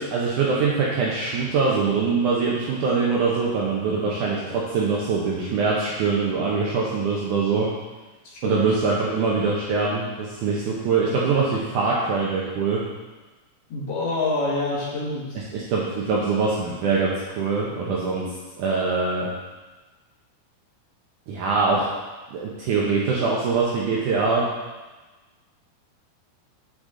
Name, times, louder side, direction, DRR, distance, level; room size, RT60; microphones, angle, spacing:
voice 1, 0.0-7.7 8.4-12.8 15.5-18.3 18.6-19.3 21.3-21.9 22.3-24.4, right 4 dB, 75° right, -5 dB, 1.8 m, -23 dB
voice 2, 8.2-8.6 13.7-15.4, left 2 dB, 55° left, -6 dB, 1.8 m, -27 dB
7.9 x 6.3 x 3.8 m, 1.2 s
omnidirectional pair, 4.7 m